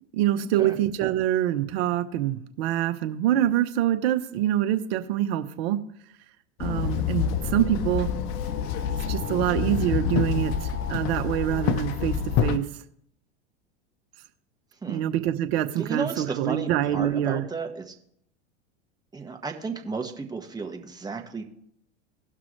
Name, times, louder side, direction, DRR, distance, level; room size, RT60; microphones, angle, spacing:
voice 1, 0.1-5.8 6.6-8.1 9.1-12.2 12.4-12.6 14.9-17.4, right 12 dB, 60° right, 9 dB, 1.1 m, -25 dB
Walk footsteps / Chatter / Hiss, 6.6-12.6, left 8 dB, 50° left, 0.9 m, -27 dB
voice 2, 15.8-17.9 19.1-21.4, right 4 dB, 10° right, 3 dB, 1.5 m, -33 dB
17.5 x 5.9 x 3.2 m, 0.70 s
hypercardioid pair, 105°, 34 cm